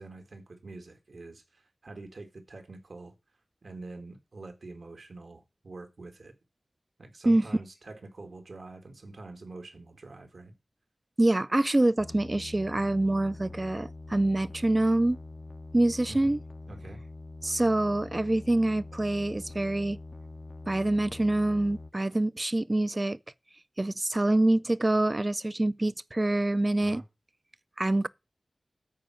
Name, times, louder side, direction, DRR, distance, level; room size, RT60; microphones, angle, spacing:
voice 1, 0.0-3.1 3.6-6.3 7.0-10.5 16.1-16.4 16.7-17.0 26.8-27.0, right 2 dB, 75° right, 1.8 m, -45 dB
voice 2, 11.2-15.2 15.7-16.4 17.4-20.0 20.7-23.2 23.8-27.0 27.8-28.1, right 1 dB, 30° right, 0.4 m, -25 dB
sound 1, 12.0-21.9, left 2 dB, 40° left, 0.5 m, -44 dB
10.0 x 4.7 x 7.4 m
wide cardioid pair, 70°, 0 cm